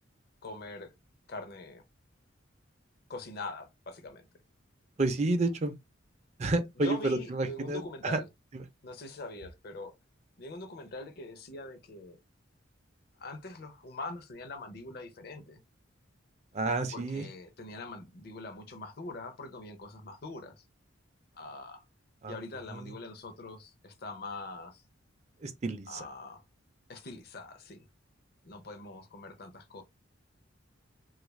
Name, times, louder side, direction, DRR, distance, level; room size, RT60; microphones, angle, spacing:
voice 1, 0.4-0.9 1.3-1.8 3.1-4.3 6.8-8.2 8.8-9.9 10.4-12.2 13.2-15.6 16.9-20.6 21.3-21.8 22.3-24.8 25.9-26.4 26.9-27.9 28.4-29.8, left 2 dB, 50° left, 0.6 m, -43 dB
voice 2, 5.0-5.7 6.4-8.2 8.5-8.6 16.5-17.2 22.2-22.4 22.7-22.9 25.4-26.0, right 2 dB, 35° right, 0.4 m, -30 dB
3.3 x 2.4 x 3.1 m
head